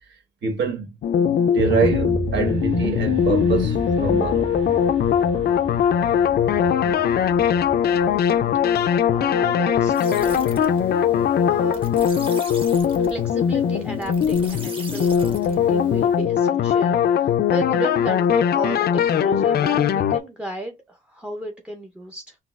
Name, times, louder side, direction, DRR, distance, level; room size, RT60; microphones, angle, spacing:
voice 1, 0.0-1.0 1.5-4.5, right 5 dB, 65° right, 1.3 m, -25 dB
sound 1, 1.0-20.2, left 8 dB, 55° left, 0.4 m, -20 dB
sound 2, 1.6-10.8, right 2 dB, 90° right, 0.9 m, -33 dB
voice 2, 9.1-10.5 11.5-11.8 13.1-22.4, right 1 dB, 5° right, 0.6 m, -34 dB
sound 3, 9.9-16.3, right 3 dB, 25° right, 1.2 m, -39 dB
3.9 x 2.4 x 2.4 m
cardioid pair, 90°, 20 cm